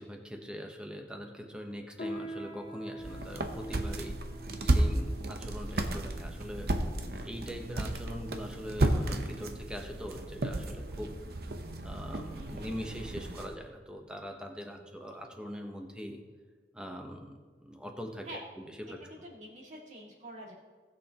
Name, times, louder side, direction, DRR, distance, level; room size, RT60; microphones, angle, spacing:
voice 1, 0.0-4.2 4.6-6.9 7.2-11.1 11.8-16.2 16.7-18.9, equal, 5° right, 2 dB, 1.0 m, -42 dB
Piano, 1.9-11.9, equal, 45° left, 1.0 m, -46 dB
sound 1, 3.0-13.5, right 1 dB, 60° right, 0.8 m, -33 dB
voice 2, 12.3-12.8 14.6-14.8 18.2-18.4 19.1-20.5, right 1 dB, 40° right, -3 dB, 2.4 m, -47 dB
19.0 x 6.8 x 3.0 m, 1.5 s
head